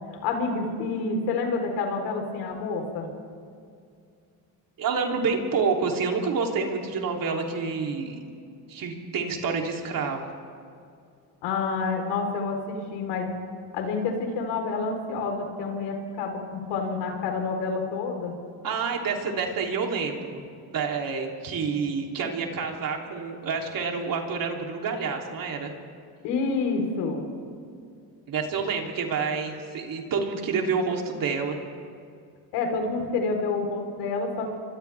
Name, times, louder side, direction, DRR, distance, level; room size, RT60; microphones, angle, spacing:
voice 1, 0.1-3.1 11.4-13.3 13.7-18.3 26.2-27.2 32.5-34.5, left 4 dB, 85° left, 3 dB, 4.1 m, -28 dB
voice 2, 4.8-8.2 8.7-10.3 18.6-20.4 20.7-25.7 28.3-31.6, right 5 dB, 55° right, 1 dB, 3.3 m, -28 dB
29.5 x 24.5 x 3.5 m, 2.3 s
supercardioid pair, 90°, 41 cm